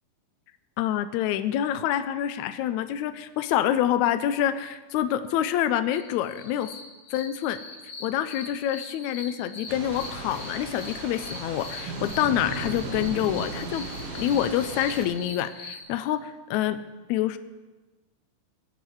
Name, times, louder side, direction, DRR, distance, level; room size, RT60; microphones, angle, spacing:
voice 1, 0.8-6.7 7.1-7.6 8.0-13.9 14.1-16.8 17.1-17.4, left 11 dB, 85° left, 11 dB, 1.6 m, -27 dB
sound 1, 5.9-15.8, left 3 dB, 45° left, 2.0 m, -42 dB
Thunder / Rain, 9.7-15.0, right 3 dB, 50° right, 2.4 m, -36 dB
22.5 x 8.2 x 4.7 m, 1.2 s
omnidirectional pair, 4.1 m